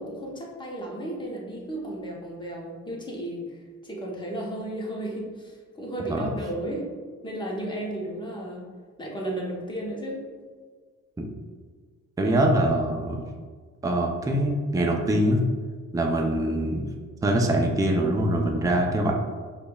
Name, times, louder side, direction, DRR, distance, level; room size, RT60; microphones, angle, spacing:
voice 1, 0.0-6.9 7.2-8.7 9.0-10.2 12.2-12.5, right 1 dB, 15° left, -2 dB, 0.9 m, -34 dB
voice 2, 12.2-13.2 13.8-15.4 15.9-16.8 17.2-19.1, right 1 dB, 10° right, 1 dB, 0.4 m, -23 dB
5.0 x 2.4 x 2.2 m, 1.5 s
cardioid pair, 90°, 30 cm